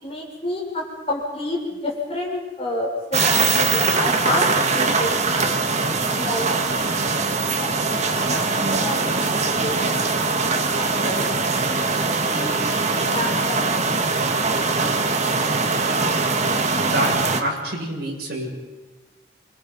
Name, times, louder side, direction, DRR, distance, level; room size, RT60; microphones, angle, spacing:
voice 1, 0.0-5.8 6.2-7.1 7.6-11.5 12.3-14.2, left 1 dB, 35° left, -1 dB, 6.3 m, -30 dB
sound 1, 3.1-17.4, right 3 dB, 40° right, 1.7 m, -22 dB
voice 2, 17.4-18.5, right 1 dB, 55° right, -2 dB, 7.1 m, -26 dB
28.0 x 24.5 x 5.5 m, 1.2 s
head